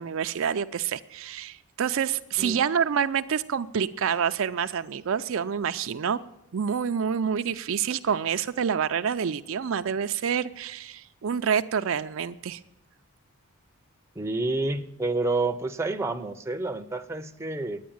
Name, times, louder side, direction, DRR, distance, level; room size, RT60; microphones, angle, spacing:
voice 1, 0.0-6.2 6.5-12.6, right 7 dB, 60° right, 10 dB, 0.4 m, -27 dB
voice 2, 14.2-17.8, right 2 dB, 10° right, 6 dB, 0.6 m, -29 dB
10.5 x 9.2 x 8.7 m, 0.81 s
head